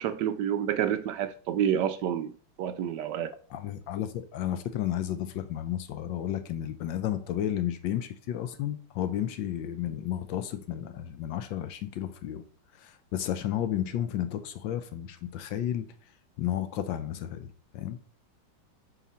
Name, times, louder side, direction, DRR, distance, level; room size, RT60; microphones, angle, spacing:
voice 1, 0.0-2.3 2.6-3.3, right 9 dB, 75° right, 1.0 m, -28 dB
voice 2, 3.5-12.4 12.8-15.8 16.4-18.0, left 11 dB, 70° left, 1.2 m, -32 dB
8.0 x 5.0 x 4.2 m
omnidirectional pair, 2.3 m